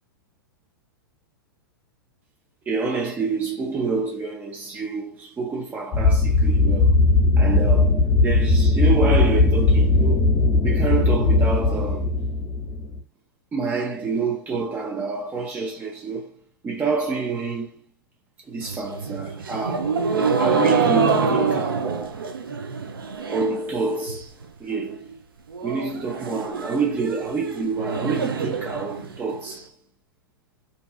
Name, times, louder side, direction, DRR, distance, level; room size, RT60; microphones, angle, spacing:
voice 1, 2.7-7.0 7.4-10.3 10.6-12.1 13.5-16.3 16.6-17.7 18.5-19.9 20.4-22.2 23.3-25.1 25.6-29.7, right 4 dB, 15° right, 0.4 m, -27 dB
sound 1, 5.9-13.0, left 3 dB, 35° left, 0.7 m, -18 dB
sound 2, 18.6-23.6 23.9-24.5 24.8-24.9 25.1-25.2 25.5-29.5, right 5 dB, 75° right, 0.5 m, -25 dB
2.6 x 2.3 x 2.2 m
figure-of-eight pair, 100°, 12 cm